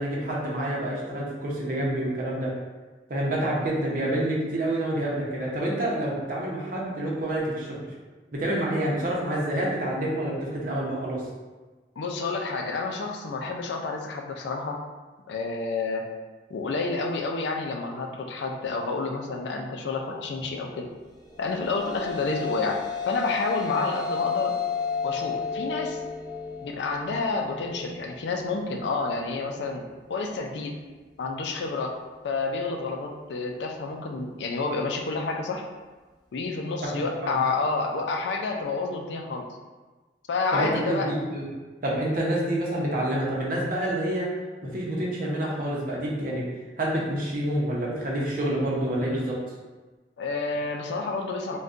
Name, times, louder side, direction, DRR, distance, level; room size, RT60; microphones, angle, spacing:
voice 1, 0.0-2.5 3.1-7.9 8.3-11.2 36.8-37.4 40.5-41.5 41.8-44.3 44.6-46.4 46.8-49.4, right 1 dB, 50° right, -4 dB, 0.7 m, -28 dB
voice 2, 12.0-14.8 15.3-16.1 16.5-20.9 21.4-22.8 23.1-24.6 25.0-26.0 26.6-29.8 30.1-30.8 31.2-32.0 32.2-35.6 36.3-39.5 40.3-41.1 50.2-51.6, left 3 dB, 80° left, 2 dB, 0.4 m, -29 dB
sound 1, 21.2-29.8, left 6 dB, 25° left, 0.5 m, -33 dB
2.5 x 2.2 x 3.5 m, 1.3 s
head